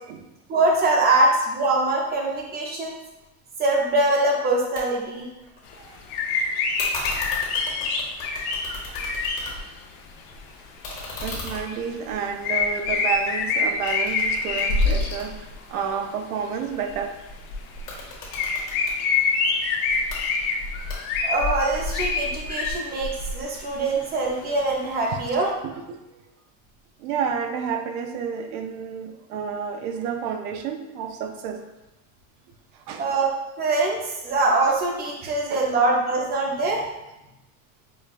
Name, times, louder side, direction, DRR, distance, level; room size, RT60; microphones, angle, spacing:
voice 1, 0.5-2.9 3.6-5.3 21.2-25.5 33.0-33.3 33.6-36.9, right 2 dB, 25° right, -1 dB, 0.5 m, -23 dB
sound 1, 4.8-4.9 5.1-6.0 6.8-9.8 10.2-13.4 13.9-16.1 17.7-19.0 19.9-20.2 20.9-21.4, left 2 dB, 30° left, 1.1 m, -37 dB
sound 2, 5.7-5.8 6.1-9.5 10.3-10.4 10.8-11.3 11.6-11.8 12.4-15.5 16.8-17.0 17.2-18.0 18.3-23.8 24.3-24.4 24.6-24.7 25.5-25.6, left 4 dB, 80° left, 0.7 m, -25 dB
voice 2, 11.2-17.2 25.6-26.0 27.0-31.6 32.9-33.1 35.2-35.7, right 7 dB, 85° right, 6 dB, 0.6 m, -30 dB
5.1 x 2.2 x 2.4 m, 0.96 s
supercardioid pair, 145°, 43 cm